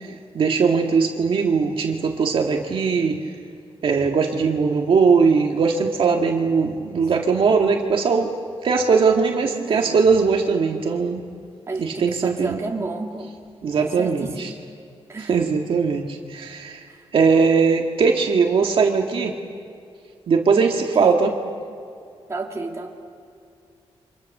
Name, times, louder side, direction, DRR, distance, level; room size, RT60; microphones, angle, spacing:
voice 1, 0.3-3.2 3.8-8.3 8.6-11.2 11.8-12.6 13.6-14.5 15.3-16.8 17.1-19.3 20.3-21.3, right 5 dB, 60° right, 2 dB, 1.9 m, -20 dB
voice 2, 9.5-10.0 11.7-13.3 13.8-14.6 15.1-15.4 21.0-21.2 22.3-23.0, right 3 dB, 25° right, 0 dB, 2.6 m, -32 dB
30.0 x 26.0 x 6.7 m, 2.4 s
wide cardioid pair, 165°, 10 cm